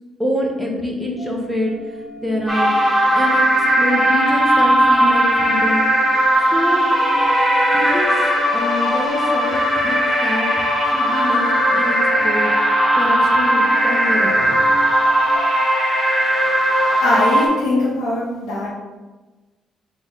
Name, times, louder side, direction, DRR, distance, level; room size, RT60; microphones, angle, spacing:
voice 1, 0.2-2.7 3.1-5.9 6.5-6.9 7.7-8.1 8.5-10.5 10.8-11.4 11.7-12.5 13.0-14.6, left 1 dB, 10° right, -1 dB, 1.0 m, -26 dB
sound 1, 1.2-15.4, left 1 dB, 70° left, 0.9 m, -37 dB
sound 2, 2.5-17.5, equal, 15° left, 1.2 m, -17 dB
voice 2, 17.0-18.7, left 2 dB, 90° left, -8 dB, 1.0 m, -20 dB
3.5 x 3.3 x 4.0 m, 1.2 s
cardioid pair, 90°, 0 cm